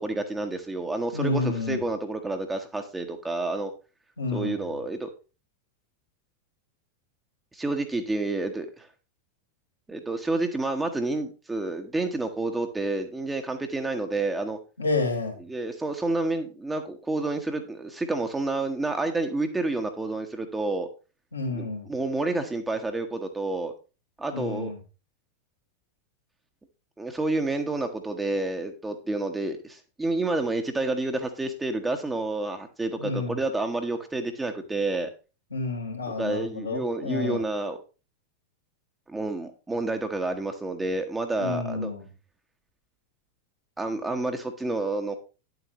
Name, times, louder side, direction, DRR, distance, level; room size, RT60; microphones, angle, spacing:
voice 1, 0.0-3.7 4.3-5.1 7.5-8.9 9.9-14.6 15.5-20.9 21.5-23.7 24.2-24.7 27.0-35.1 36.2-37.8 39.1-41.9 43.8-45.2, right 2 dB, 10° right, 5 dB, 1.1 m, -29 dB
voice 2, 1.1-1.8 4.2-4.8 14.8-15.4 21.3-21.9 24.3-24.8 33.0-33.4 35.5-37.4 41.4-42.1, left 3 dB, 80° left, 1 dB, 2.9 m, -30 dB
10.0 x 7.9 x 3.0 m, 0.31 s
figure-of-eight pair, 90°, 0 cm